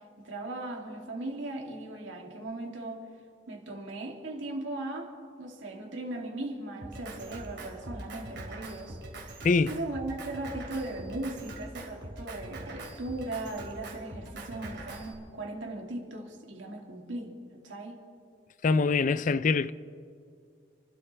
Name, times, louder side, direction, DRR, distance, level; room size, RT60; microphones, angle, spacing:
voice 1, 0.2-3.1 3.5-5.1 5.4-18.0, right 2 dB, 85° right, 2.7 m, -38 dB
Drum kit, 6.8-15.1, right 2 dB, 60° right, 2.6 m, -43 dB
voice 2, 9.4-9.8 18.6-19.7, left 4 dB, 40° left, 0.4 m, -24 dB
29.5 x 12.5 x 3.3 m
head